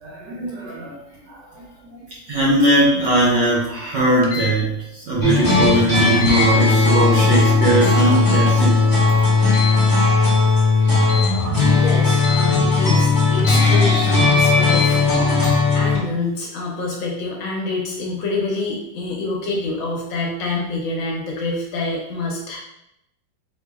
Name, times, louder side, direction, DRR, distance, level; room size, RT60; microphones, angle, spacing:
voice 1, 0.0-2.0 2.3-9.0 15.1-15.4, right 1 dB, 70° right, -4 dB, 1.1 m, -20 dB
sound 1, 4.2-4.5 6.2-6.5 7.7-8.0 9.5-9.8 11.0-11.4 12.2-12.5 13.4-13.7 14.6-14.9, left 7 dB, 90° left, 1.6 m, -28 dB
sound 2, 5.2-16.0, left 3 dB, 30° left, 0.3 m, -16 dB
voice 2, 11.3-15.0 15.7-22.6, left 3 dB, 70° left, -2 dB, 1.3 m, -26 dB
4.4 x 2.7 x 2.3 m, 0.85 s
omnidirectional pair, 2.4 m